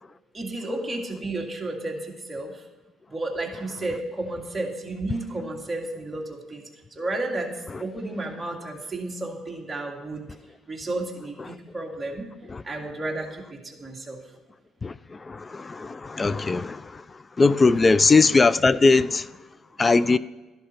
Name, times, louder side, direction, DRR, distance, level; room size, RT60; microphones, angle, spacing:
voice 1, 0.3-2.6 3.1-6.6 6.9-10.2 10.7-12.3 12.6-14.2 17.8-17.9, right 2 dB, 20° right, 2.1 m, -32 dB
voice 2, 14.8-19.3 19.8-20.2, left 3 dB, 25° left, 0.4 m, -20 dB
13.0 x 11.5 x 4.4 m
cardioid pair, 100°, 0 cm